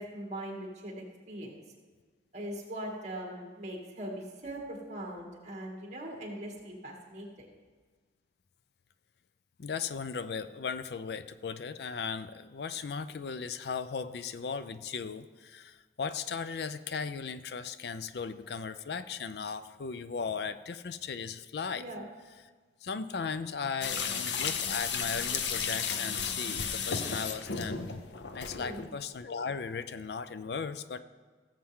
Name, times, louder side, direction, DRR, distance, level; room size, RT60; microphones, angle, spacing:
voice 1, 0.0-1.6 2.3-7.5 21.7-22.1 28.5-28.8, right 1 dB, 40° right, -1 dB, 2.5 m, -41 dB
voice 2, 9.6-21.8 22.8-27.8 28.3-31.0, left 5 dB, 70° left, 13 dB, 0.5 m, -37 dB
sound 1, 23.8-28.9, left 6 dB, 90° left, 0.8 m, -33 dB
17.0 x 7.4 x 3.7 m, 1.4 s
head